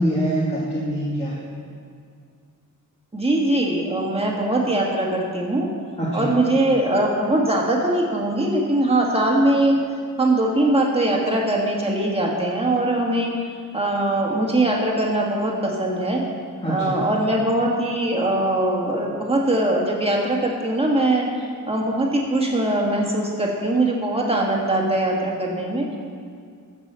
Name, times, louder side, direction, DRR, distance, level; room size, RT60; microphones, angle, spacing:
voice 1, 0.0-1.4 6.0-6.3 16.6-17.0, equal, 20° left, -8 dB, 2.0 m, -24 dB
voice 2, 3.1-5.7 6.1-9.8 10.2-13.3 13.7-16.2 16.7-21.3 21.7-26.0, right 1 dB, 15° right, -1 dB, 1.8 m, -21 dB
14.5 x 6.1 x 6.9 m, 2.2 s
wide cardioid pair, 165°, 33 cm